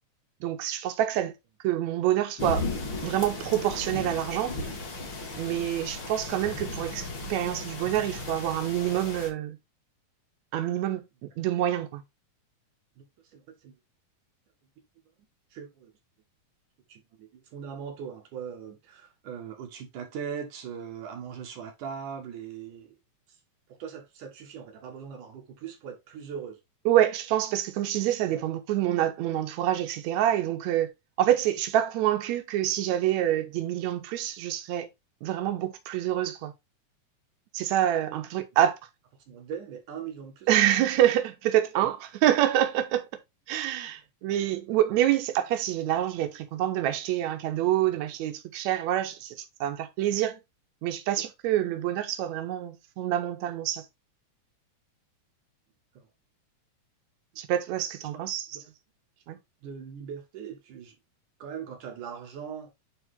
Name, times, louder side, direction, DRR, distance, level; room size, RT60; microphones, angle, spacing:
voice 1, 0.4-1.3 1.6-2.6 3.0-4.6 5.4-9.6 10.5-12.0 26.9-30.9 31.2-34.9 35.2-36.5 37.5-38.8 40.5-43.0 43.5-49.4 49.6-50.4 50.8-53.9 57.4-58.5 59.3-59.4, right 12 dB, 70° right, 2.2 m, -26 dB
sound 1, 2.4-9.3, left 2 dB, 40° left, 2.5 m, -36 dB
voice 2, 13.3-13.8 15.5-15.9 16.9-23.0 23.7-26.6 28.3-28.6 39.3-40.7 41.8-41.9 55.9-56.1 58.1-58.2 58.5-58.7 59.6-61.0 61.4-62.8, right 7 dB, 90° right, 3.2 m, -40 dB
9.2 x 3.7 x 3.7 m
omnidirectional pair, 3.5 m